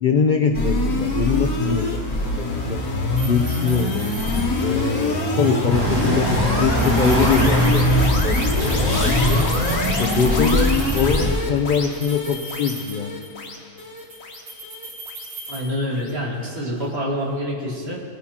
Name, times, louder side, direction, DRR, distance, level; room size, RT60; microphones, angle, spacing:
voice 1, 0.0-2.0 2.4-2.8 3.2-4.1 4.6-9.4 9.9-10.7 10.9-13.2, left 5 dB, 55° left, 4 dB, 0.5 m, -23 dB
sound 1, 0.5-15.7, left 2 dB, 70° left, 1.7 m, -24 dB
sound 2, 3.2-4.9 6.7-11.4 11.9-13.5 13.8-16.2, right 2 dB, 65° right, 2.2 m, -38 dB
sound 3, 5.7-11.4, equal, 15° right, 1.6 m, -22 dB
voice 2, 15.5-18.0, equal, 45° right, -3 dB, 2.2 m, -26 dB
20.5 x 10.5 x 2.9 m, 2.2 s
omnidirectional pair, 1.5 m